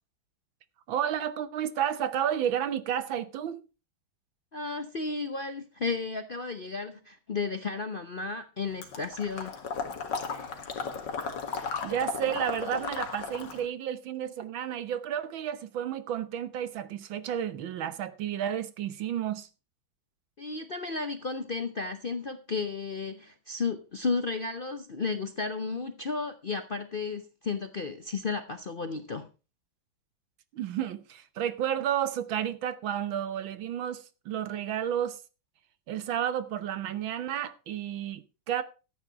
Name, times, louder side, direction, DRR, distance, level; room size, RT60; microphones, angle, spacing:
voice 1, 0.9-3.6 11.8-19.5 30.5-35.2 35.9-38.6, right 10 dB, 85° right, 1.8 m, -31 dB
voice 2, 4.5-9.5 20.4-29.3, left 4 dB, 50° left, 0.6 m, -33 dB
Water / Liquid, 8.8-13.7, left 5 dB, 65° left, 2.2 m, -35 dB
13.5 x 8.9 x 4.6 m
omnidirectional pair, 2.1 m